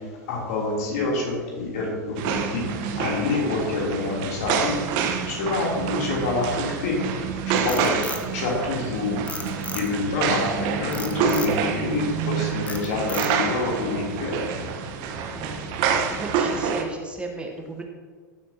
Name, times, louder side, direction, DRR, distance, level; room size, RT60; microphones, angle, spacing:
voice 1, 0.3-2.7 3.0-4.7 5.3-7.1 7.4-8.0 8.3-9.2 9.7-14.5, left 3 dB, 55° left, -2 dB, 3.3 m, -27 dB
sound 1, 2.2-16.8, right 6 dB, 45° right, 1.1 m, -27 dB
Frog, 7.4-8.9 9.3-10.2 10.9-11.6 12.1-12.3 12.7-13.6, left 3 dB, 15° left, 1.2 m, -35 dB
voice 2, 15.3-15.7 16.1-17.8, right 2 dB, 10° right, 2 dB, 1.3 m, -35 dB
15.0 x 8.3 x 2.9 m, 1.5 s
figure-of-eight pair, 90°, 10 cm